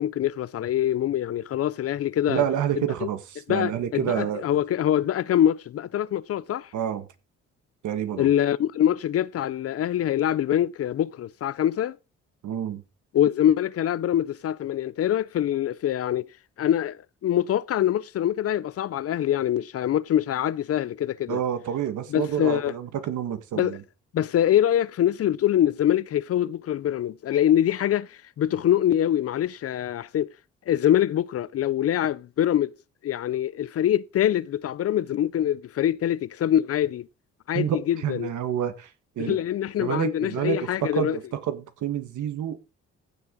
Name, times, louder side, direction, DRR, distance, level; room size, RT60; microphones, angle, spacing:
voice 1, 0.0-2.4 2.8-2.9 3.5-6.7 8.2-11.9 13.1-16.3 16.6-17.0 17.2-21.4 22.1-22.7 23.6-23.8 24.1-28.1 28.4-30.3 30.7-32.7 33.0-37.1 37.5-38.3 39.2-41.2, left 11 dB, 50° left, 0.5 m, -24 dB
voice 2, 2.3-4.4 6.7-7.1 7.8-8.3 12.4-12.8 21.3-23.8 37.5-38.9 39.2-39.4 39.8-42.6, right 9 dB, 75° right, 1.7 m, -28 dB
15.5 x 7.2 x 3.9 m
cardioid pair, 90°, 30 cm